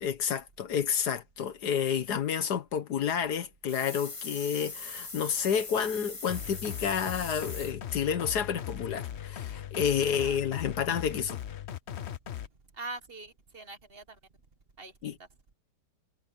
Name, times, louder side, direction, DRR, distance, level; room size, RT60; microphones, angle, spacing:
voice 1, 0.0-11.4 15.0-15.1, left 8 dB, 75° left, 1.7 m, -30 dB
sound 1, 3.7-7.7, left 3 dB, 20° left, 1.1 m, -41 dB
sound 2, 6.3-12.5, left 10 dB, 50° left, 0.9 m, -39 dB
voice 2, 10.1-10.4 12.7-14.2 14.8-14.9, right 3 dB, 35° right, 1.7 m, -43 dB
omnidirectional pair, 1.8 m